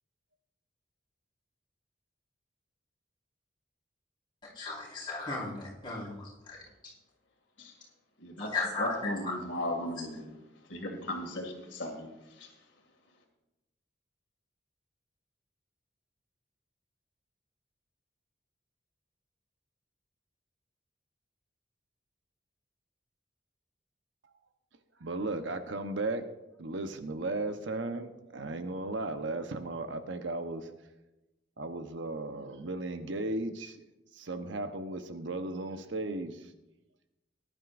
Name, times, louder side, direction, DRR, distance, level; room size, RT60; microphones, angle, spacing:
voice 1, 4.5-6.6 8.4-9.3, left 3 dB, 25° left, -7 dB, 4.7 m, -35 dB
voice 2, 8.2-10.2 10.7-12.1 12.4-12.5, left 1 dB, 75° left, 2 dB, 2.3 m, -36 dB
voice 3, 25.0-26.3 26.6-30.7 31.6-33.9 34.1-36.5, right 2 dB, 80° right, 8 dB, 1.0 m, -35 dB
19.0 x 11.5 x 2.6 m, 0.98 s
head